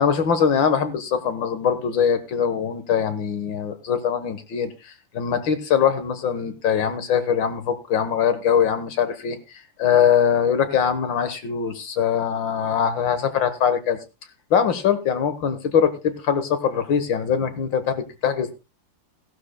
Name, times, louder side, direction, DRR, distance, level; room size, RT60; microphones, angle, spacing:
voice 1, 0.0-4.7 5.1-9.4 9.8-14.0 14.5-18.5, left 7 dB, 85° left, 10 dB, 2.1 m, -22 dB
17.0 x 11.5 x 2.2 m, 0.27 s
omnidirectional pair, 2.0 m